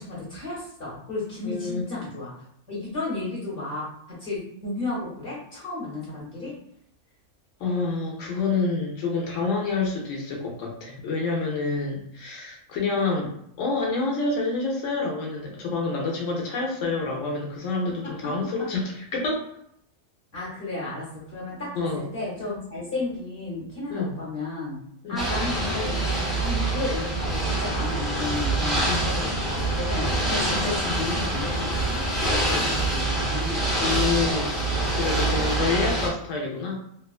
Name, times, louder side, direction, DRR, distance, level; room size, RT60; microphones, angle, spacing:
voice 1, 0.0-2.3 2.7-6.5 18.0-18.1 20.3-24.8 25.1-34.1, left 2 dB, 50° left, -6 dB, 1.0 m, -33 dB
voice 2, 1.4-1.9 7.6-13.3 13.6-19.5 21.8-22.1 23.9-24.1 25.0-25.2 28.9-29.1 33.8-36.7, left 3 dB, 75° left, -1 dB, 1.0 m, -28 dB
Ocean / Boat Water vehicle, 25.2-36.1, right 2 dB, ahead, 0.5 m, -25 dB
2.9 x 2.2 x 2.3 m, 0.70 s
omnidirectional pair, 1.3 m